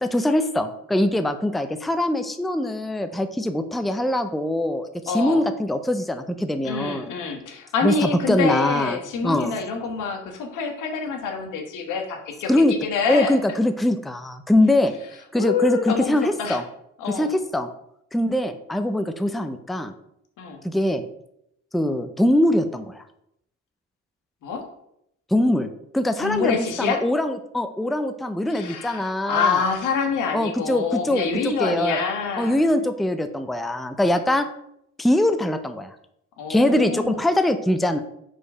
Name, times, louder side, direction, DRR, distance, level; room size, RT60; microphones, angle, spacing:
voice 1, 0.0-7.1 7.8-7.9 8.3-9.0 9.2-9.5 12.5-12.7 13.1-14.9 15.3-16.6 17.1-17.7 18.1-19.9 20.6-21.0 21.7-23.0 25.3-25.7 25.9-29.6 30.3-32.0 32.4-34.5 35.0-35.9 36.5-38.0, left 1 dB, ahead, 9 dB, 0.5 m, -22 dB
voice 2, 5.1-5.4 6.6-12.5 12.8-13.4 15.3-16.6 17.0-17.3 20.4-20.6 24.4-24.6 26.2-27.0 28.5-32.6 36.4-37.2, left 5 dB, 85° left, 4 dB, 1.4 m, -26 dB
5.0 x 4.6 x 5.4 m, 0.77 s
cardioid pair, 90°, 30 cm